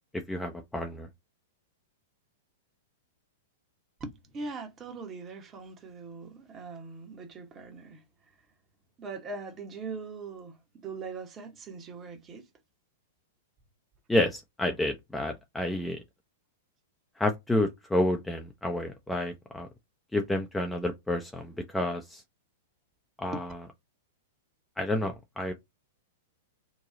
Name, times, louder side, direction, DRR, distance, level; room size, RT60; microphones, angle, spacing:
voice 1, 0.1-1.1 14.1-16.0 17.2-19.7 20.1-22.2 23.2-23.5 24.8-25.5, left 1 dB, 5° left, 0.5 m, -30 dB
voice 2, 4.0-8.0 9.0-10.6 10.8-12.5 23.3-23.4, right 4 dB, 25° right, 1.0 m, -41 dB
3.0 x 2.3 x 3.7 m
figure-of-eight pair, 100°, 0 cm